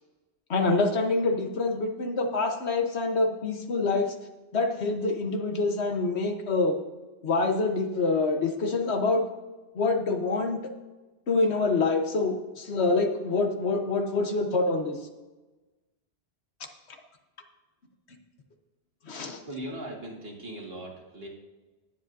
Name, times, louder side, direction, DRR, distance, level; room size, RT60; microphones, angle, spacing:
voice 1, 0.5-4.1 4.5-6.8 7.2-9.2 9.7-10.6 11.3-15.0 19.1-19.4, left 3 dB, 70° left, 5 dB, 1.3 m, -26 dB
voice 2, 19.5-21.3, right 1 dB, 60° right, -1 dB, 2.2 m, -39 dB
19.0 x 7.7 x 2.7 m, 1.2 s
omnidirectional pair, 1.2 m